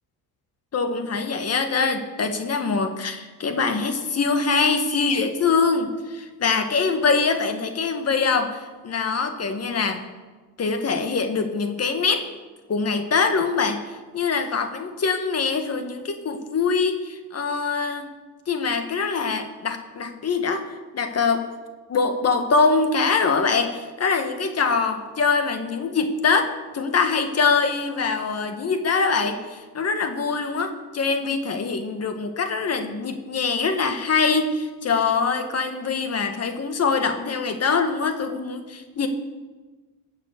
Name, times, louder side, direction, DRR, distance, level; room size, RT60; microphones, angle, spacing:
voice 1, 0.7-10.0 10.6-12.3 12.7-18.1 18.5-21.5 21.9-39.1, left 4 dB, 40° left, 7 dB, 1.7 m, -23 dB
19.5 x 7.5 x 6.6 m, 1.3 s
cardioid pair, 120°, 40 cm